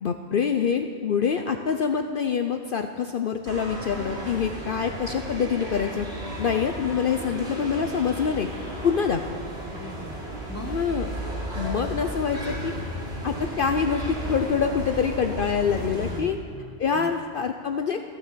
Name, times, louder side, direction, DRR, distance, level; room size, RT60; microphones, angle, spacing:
voice 1, 0.0-6.1 6.4-8.5 8.8-9.4 10.7-11.1 11.6-12.7 13.2-16.4 16.8-18.0, left 6 dB, 55° left, 6 dB, 0.8 m, -25 dB
sound 1, 3.4-16.2, equal, 70° right, 3.5 m, -34 dB
voice 2, 9.7-10.8 16.1-17.1, left 1 dB, 15° left, 5 dB, 1.0 m, -41 dB
15.5 x 9.8 x 7.5 m, 2.4 s
omnidirectional pair, 1.2 m